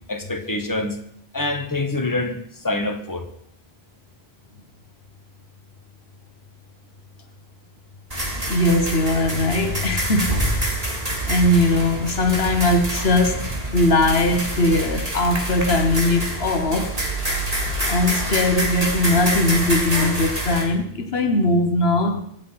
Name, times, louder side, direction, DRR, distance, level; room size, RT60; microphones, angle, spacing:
voice 1, 0.1-1.0 1.3-2.4 2.6-3.3, left 2 dB, 20° left, 1.6 m, -25 dB
sound 1, 8.1-20.6, right 1 dB, 35° right, 3.2 m, -26 dB
voice 2, 8.5-10.5 11.2-17.0 17.8-22.2, left 2 dB, 75° left, 1.5 m, -20 dB
24.0 x 8.4 x 5.8 m
omnidirectional pair, 1.1 m